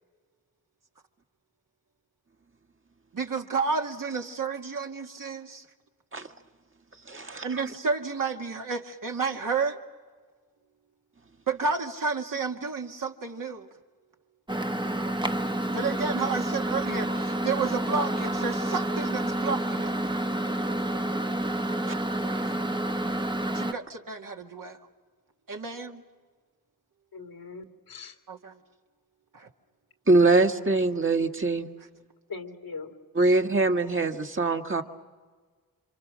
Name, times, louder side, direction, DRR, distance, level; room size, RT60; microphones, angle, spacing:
voice 1, 3.1-5.7 7.1-9.8 11.5-13.7 15.7-19.9 22.4-22.5 23.5-24.8 25.5-26.0 28.3-28.6 29.3-29.5, right 4 dB, 65° right, 2 dB, 2.1 m, -31 dB
voice 2, 7.1-7.6 21.9-22.0 30.1-31.7 33.2-34.8, right 3 dB, 35° right, 4 dB, 1.7 m, -23 dB
Microwave oven, 14.5-23.7, right 1 dB, 15° right, 1.0 m, -29 dB
voice 3, 27.1-28.2 32.3-33.4, left 4 dB, 90° left, 3 dB, 2.4 m, -41 dB
28.0 x 26.5 x 6.4 m, 1.5 s
cardioid pair, 60°, 35 cm